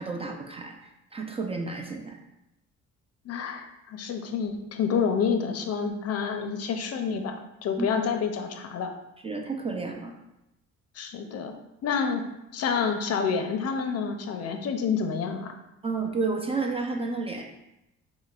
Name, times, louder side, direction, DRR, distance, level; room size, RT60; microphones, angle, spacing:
voice 1, 0.0-2.2 7.8-7.9 9.2-10.1 15.8-17.4, right 4 dB, 20° right, 2 dB, 0.3 m, -31 dB
voice 2, 3.2-8.9 11.0-11.6 11.8-12.2 12.5-15.5, left 6 dB, 55° left, 6 dB, 0.5 m, -28 dB
5.3 x 2.1 x 2.3 m, 0.89 s
cardioid pair, 90°, 30 cm